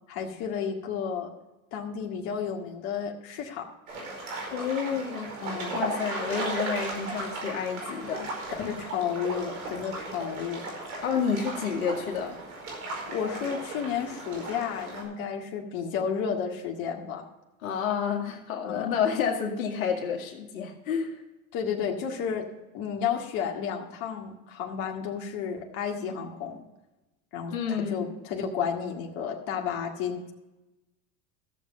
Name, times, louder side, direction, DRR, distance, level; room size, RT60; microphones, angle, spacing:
voice 1, 0.1-1.3 1.7-3.7 5.4-5.8 8.6-10.7 13.1-17.2 18.6-18.9 21.5-22.5 22.7-26.6 27.3-30.3, left 7 dB, 55° left, 1 dB, 2.0 m, -32 dB
sound 1, 3.9-15.0, right 2 dB, 80° right, 4.9 m, -36 dB
voice 2, 4.5-5.3 5.7-8.3 11.0-12.4 17.6-21.2 27.5-28.2, left 7 dB, 80° left, 2 dB, 2.1 m, -30 dB
14.5 x 7.3 x 5.3 m, 1.0 s
hypercardioid pair, 100°, 42 cm